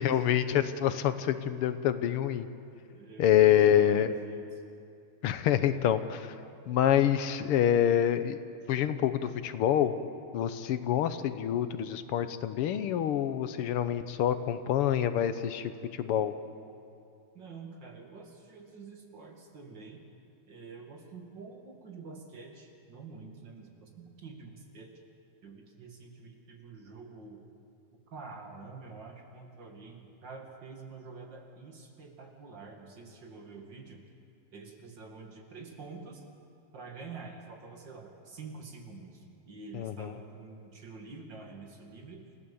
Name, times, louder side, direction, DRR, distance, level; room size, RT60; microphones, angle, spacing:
voice 1, 0.0-2.5 3.2-4.1 5.2-6.4 6.7-8.4 8.7-9.9 10.3-16.3 39.7-40.1, left 10 dB, 85° left, 11 dB, 1.9 m, -26 dB
voice 2, 2.9-4.6 17.3-20.0 20.5-24.9 25.4-27.4 27.9-34.0 34.5-36.2 36.7-42.2, right 4 dB, 55° right, 2 dB, 2.8 m, -47 dB
28.0 x 15.5 x 7.1 m, 2.5 s
omnidirectional pair, 2.4 m